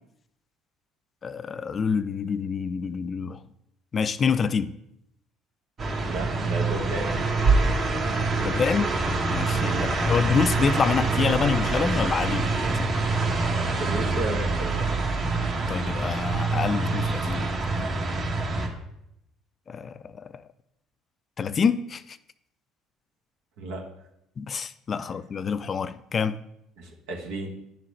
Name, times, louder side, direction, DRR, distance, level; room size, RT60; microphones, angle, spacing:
voice 1, 1.2-3.4 3.9-4.7 8.4-8.9 9.3-12.9 15.7-17.5 17.8-17.9 19.7-20.4 21.4-22.2 24.4-26.4, left 6 dB, 40° left, 0.4 m, -27 dB
sound 1, 5.8-18.7, right 3 dB, 45° right, 1.4 m, -25 dB
voice 2, 6.0-7.2 9.7-10.1 13.8-15.0 23.6-23.8 26.8-27.5, right 2 dB, 75° right, 1.5 m, -33 dB
10.5 x 3.8 x 3.2 m
hypercardioid pair, 70°, 0 cm